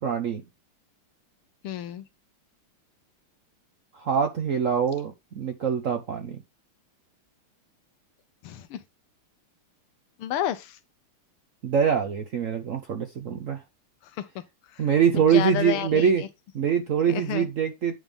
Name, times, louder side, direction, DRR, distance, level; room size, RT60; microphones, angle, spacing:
voice 1, 0.0-0.4 3.9-6.4 11.6-13.6 14.8-16.2 16.5-18.0, right 7 dB, 70° right, 0.7 m, -24 dB
voice 2, 1.6-2.0 8.4-8.8 10.2-10.8 14.2-14.4 14.7-14.8 15.3-16.3 17.1-17.5, left 11 dB, 85° left, 1.8 m, -31 dB
9.5 x 3.4 x 5.3 m
omnidirectional pair, 2.4 m